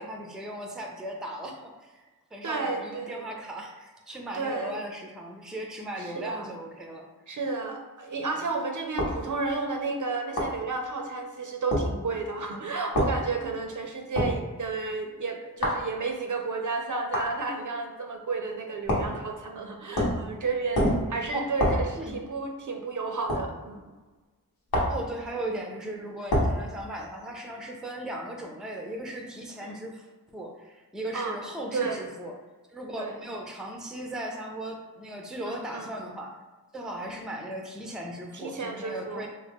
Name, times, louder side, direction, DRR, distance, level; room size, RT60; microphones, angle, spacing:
voice 1, 0.0-2.1 2.3-7.1 19.9-20.0 21.3-21.5 22.0-22.2 24.9-30.1 30.3-32.4 32.7-36.4 36.7-39.3, right 1 dB, ahead, 1 dB, 0.5 m, -37 dB
voice 2, 2.4-3.2 4.3-4.8 6.0-6.5 7.3-23.9 26.3-26.5 29.6-29.8 31.1-31.4 31.7-32.0 33.0-33.2 35.5-35.9 38.3-39.3, right 4 dB, 55° right, 3 dB, 0.5 m, -32 dB
sound 1, 9.0-9.2 10.4-10.6 11.7-11.9 12.9-13.2 14.2-14.4 15.6-15.8 17.1-17.3 18.9-19.2 20.0-20.3 20.7-21.1 21.6-21.9 23.3-23.5 24.7-25.0 26.3-26.6, equal, 75° left, 1.0 m, -25 dB
3.6 x 2.2 x 3.5 m, 1.3 s
wide cardioid pair, 80°, 36 cm